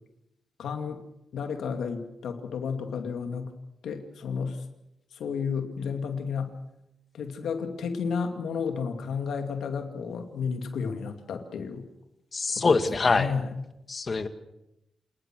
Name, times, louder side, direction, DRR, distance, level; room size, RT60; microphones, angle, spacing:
voice 1, 0.6-1.0 1.3-3.5 3.8-4.6 5.1-6.5 7.1-11.8 12.6-12.8 13.1-13.5, left 6 dB, 85° left, 6 dB, 2.5 m, -32 dB
voice 2, 12.3-13.3 13.9-14.3, left 4 dB, 45° left, 9 dB, 2.0 m, -24 dB
27.5 x 20.0 x 6.3 m, 0.88 s
cardioid pair, 75°, 0 cm